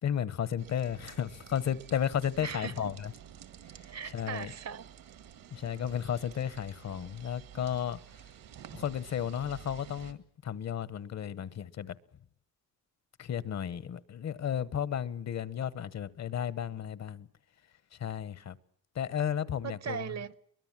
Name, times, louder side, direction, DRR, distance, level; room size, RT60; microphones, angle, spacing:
voice 1, 0.0-3.1 4.1-4.5 5.5-8.3 8.7-12.0 13.2-17.3 17.9-18.6 18.9-20.1, left 9 dB, 50° left, 1.1 m, -33 dB
sound 1, 0.6-10.1, right 9 dB, 80° right, 1.9 m, -51 dB
voice 2, 2.4-2.9 3.8-4.8 19.6-20.4, right 7 dB, 50° right, 1.0 m, -39 dB
23.0 x 20.5 x 7.4 m
cardioid pair, 105°, 33 cm